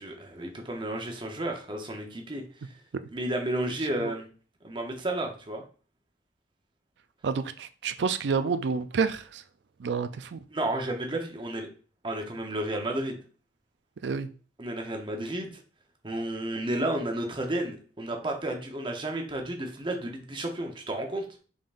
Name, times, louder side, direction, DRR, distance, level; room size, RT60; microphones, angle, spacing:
voice 1, 0.0-2.4 3.1-4.3 4.6-5.6 10.5-11.7 12.0-13.2 14.6-15.6 16.0-21.3, right 1 dB, 25° right, 0.8 m, -32 dB
voice 2, 7.2-9.4 9.8-10.4 14.0-14.3, right 5 dB, 75° right, 0.4 m, -29 dB
5.4 x 3.7 x 2.5 m
head